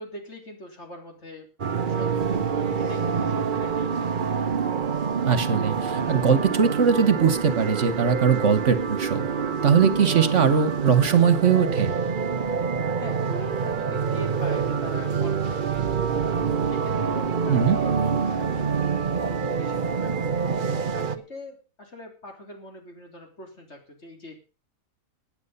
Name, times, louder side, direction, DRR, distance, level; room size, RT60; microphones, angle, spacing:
voice 1, 0.0-1.5 1.9-4.0 13.0-18.8 19.2-20.4 20.9-24.4, left 1 dB, 55° left, 3 dB, 3.9 m, -42 dB
sound 1, 1.6-21.2, right 6 dB, 40° right, 1.0 m, -26 dB
voice 2, 5.2-9.2 9.6-12.0 17.5-17.8, right 7 dB, 60° right, 13 dB, 1.6 m, -20 dB
16.5 x 9.4 x 5.6 m, 0.35 s
omnidirectional pair, 1.4 m